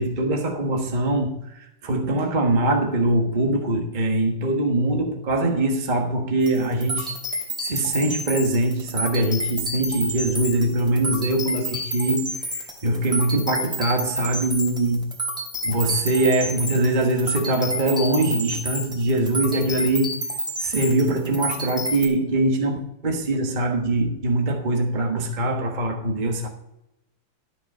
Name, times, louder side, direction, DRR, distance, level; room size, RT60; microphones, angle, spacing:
voice 1, 0.0-7.1 7.6-15.1 15.6-20.2 20.6-26.5, right 2 dB, 25° right, 1.4 m, -23 dB
sound 1, 6.4-22.1, equal, ahead, 2.9 m, -30 dB
12.5 x 6.0 x 5.5 m
omnidirectional pair, 2.1 m